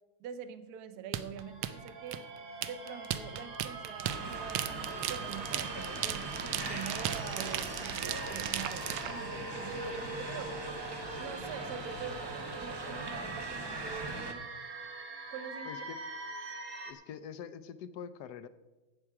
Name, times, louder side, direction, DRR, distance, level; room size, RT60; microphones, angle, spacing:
voice 1, 0.2-2.2 2.6-10.5 11.2-14.5 15.3-15.8, right 8 dB, 60° right, 11 dB, 1.1 m, -45 dB
sound 1, 1.1-9.1, right 11 dB, 90° right, 1.5 m, -36 dB
sound 2, 1.4-16.9, right 3 dB, 45° right, 1.5 m, -43 dB
sound 3, 4.0-14.3, right 2 dB, 30° right, 0.4 m, -41 dB
voice 2, 15.6-16.0 16.8-18.5, left 8 dB, 75° left, 13 dB, 1.0 m, -44 dB
13.0 x 8.8 x 4.8 m, 1.2 s
omnidirectional pair, 2.2 m